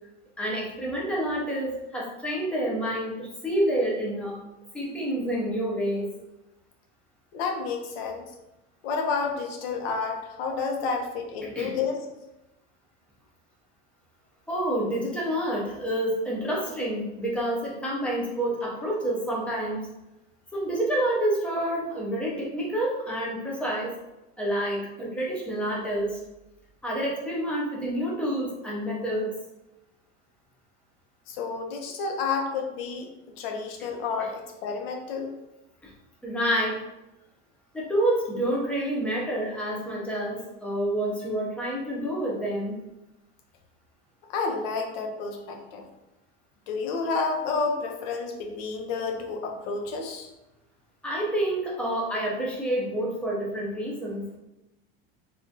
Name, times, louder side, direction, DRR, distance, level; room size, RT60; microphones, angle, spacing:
voice 1, 0.4-4.4 4.7-6.1 11.4-11.7 14.5-19.8 20.5-23.9 24.4-26.2 26.8-29.3 35.8-35.9 36.2-36.8 37.7-42.7 51.0-54.4, right 1 dB, 5° left, -4 dB, 0.3 m, -28 dB
voice 2, 7.3-8.2 8.8-12.0 31.3-35.3 44.3-45.8 46.7-50.3, left 4 dB, 80° left, 3 dB, 0.7 m, -30 dB
3.4 x 2.3 x 2.6 m, 0.95 s
cardioid pair, 165°, 30 cm